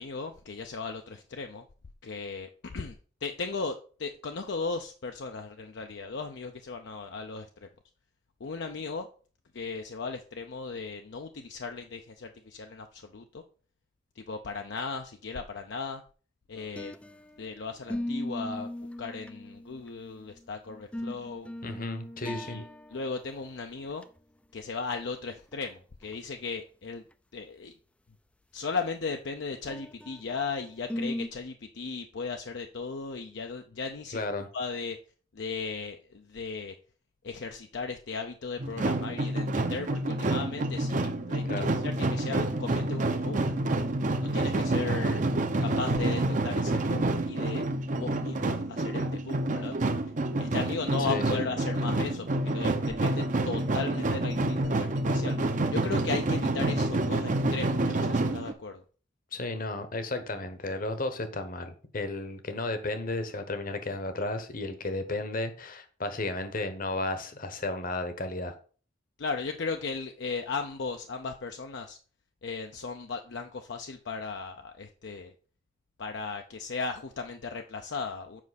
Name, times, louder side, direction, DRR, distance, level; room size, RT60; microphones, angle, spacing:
voice 1, 0.0-1.6 2.0-7.7 8.4-9.1 9.5-13.4 14.2-16.0 16.5-16.9 17.4-21.5 22.2-22.6 22.9-24.1 24.5-27.0 27.3-27.7 28.5-34.2 34.5-35.0 35.3-36.8 37.2-43.4 44.2-45.2 45.6-47.6 48.0-49.7 50.4-55.4 55.7-58.8 69.2-72.0 72.4-75.3 76.0-78.4, left 4 dB, 60° left, 5 dB, 0.5 m, -36 dB
sound 1, 16.6-17.5 17.9-20.1 20.7-23.1 23.4-23.5 23.9-24.0 25.5-25.6 26.0-26.1 29.7-30.4 30.9-31.3, left 1 dB, 5° left, 0.3 m, -37 dB
voice 2, 21.6-22.6 34.1-34.5 41.5-41.7 51.1-51.4 59.3-68.5, left 2 dB, 45° left, 9 dB, 1.0 m, -33 dB
sound 2, 38.6-58.5, right 2 dB, 40° right, 0.7 m, -28 dB
7.4 x 5.2 x 4.1 m, 0.40 s
head